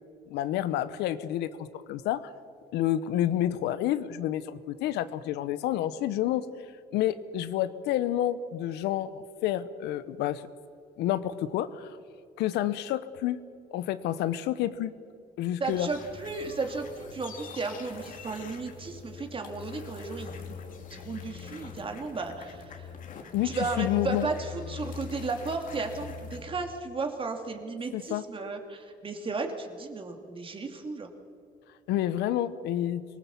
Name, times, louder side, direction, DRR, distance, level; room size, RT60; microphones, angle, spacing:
voice 1, 0.3-2.3 2.7-6.5 6.9-10.5 11.0-12.0 12.4-13.4 13.7-14.9 15.4-15.9 23.3-24.3 27.9-28.2 31.9-33.0, left 12 dB, 85° left, 14 dB, 1.0 m, -29 dB
sound 1, 15.6-26.4, left 6 dB, 50° left, 2.5 m, -43 dB
voice 2, 15.6-22.9 23.4-31.1, right 4 dB, 30° right, 4 dB, 2.7 m, -34 dB
25.0 x 19.0 x 7.1 m, 2.4 s
cardioid pair, 110°, 17 cm